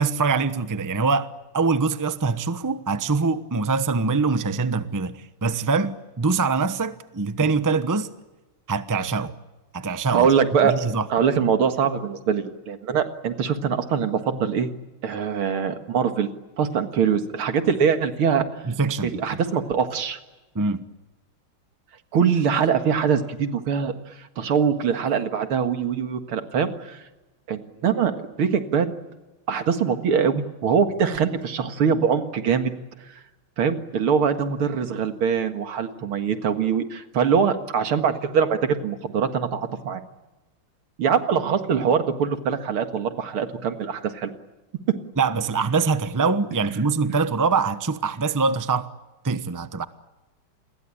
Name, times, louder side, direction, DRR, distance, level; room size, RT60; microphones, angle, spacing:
voice 1, 0.0-8.1 8.7-9.3 9.7-10.3 10.6-11.1 18.7-19.4 20.5-20.8 45.2-48.9 49.2-49.8, right 4 dB, 20° right, 0.6 m, -24 dB
voice 2, 10.1-10.7 11.1-14.7 15.0-16.3 16.6-18.5 19.0-20.2 22.1-23.9 24.4-27.0 27.5-28.9 29.5-32.7 33.6-40.0 41.0-44.3, right 7 dB, 90° right, 2.6 m, -23 dB
29.0 x 22.0 x 8.7 m
omnidirectional pair, 2.3 m